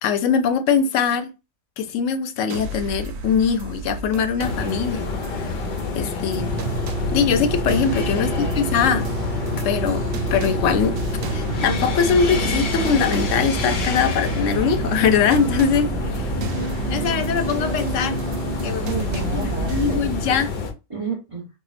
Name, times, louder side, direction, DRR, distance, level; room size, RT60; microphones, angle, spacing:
voice 1, 0.0-1.3 1.8-5.0 5.4-5.5 5.9-6.6 7.1-9.1 9.6-11.0 11.3-16.2 16.9-18.2 18.6-18.9 19.3-20.5, left 6 dB, 80° left, 0.9 m, -22 dB
sound 1, 2.5-20.0, right 3 dB, 90° right, 1.0 m, -34 dB
sound 2, 4.4-20.7, left 4 dB, 55° left, 0.7 m, -28 dB
sound 3, 6.3-20.3, right 4 dB, 55° right, 0.8 m, -29 dB
voice 2, 8.2-8.6 18.9-20.1 20.6-21.5, right 4 dB, 30° right, 0.9 m, -32 dB
4.5 x 2.2 x 2.5 m
omnidirectional pair, 1.3 m